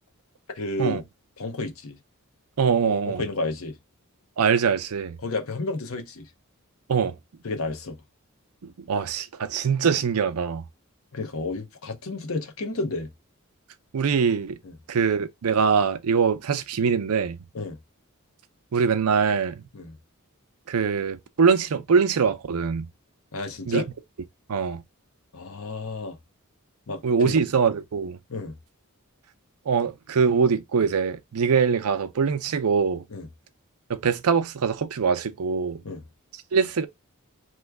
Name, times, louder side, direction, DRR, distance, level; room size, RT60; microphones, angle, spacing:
voice 1, 0.5-1.0 1.4-2.0 2.8-3.7 5.2-6.2 7.4-8.0 11.1-13.1 14.6-14.7 17.5-17.8 19.7-19.9 23.3-23.9 25.3-26.2 26.9-27.4 28.3-28.5 33.1-33.3 35.8-36.0, left 3 dB, 70° left, 0.8 m, -31 dB
voice 2, 2.6-3.2 4.4-5.2 6.9-7.2 8.6-10.6 13.9-14.6 14.9-17.4 18.7-19.6 20.7-22.9 23.7-23.8 24.5-24.8 27.0-28.2 29.7-33.0 33.9-35.8 36.5-36.9, right 6 dB, 80° right, 0.5 m, -23 dB
3.1 x 2.2 x 3.4 m
head